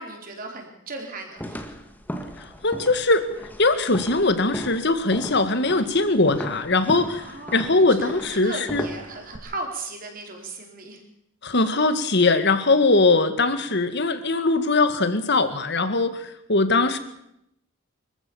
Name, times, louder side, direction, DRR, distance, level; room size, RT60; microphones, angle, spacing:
voice 1, 0.0-1.7 7.1-11.0, right 2 dB, 45° right, 2 dB, 4.5 m, -36 dB
sound 1, 1.4-9.4, equal, 10° left, 1.8 m, -36 dB
voice 2, 2.6-3.3 3.6-8.8 11.4-17.0, left 3 dB, 55° left, 10 dB, 1.9 m, -21 dB
24.5 x 14.5 x 7.2 m, 0.80 s
head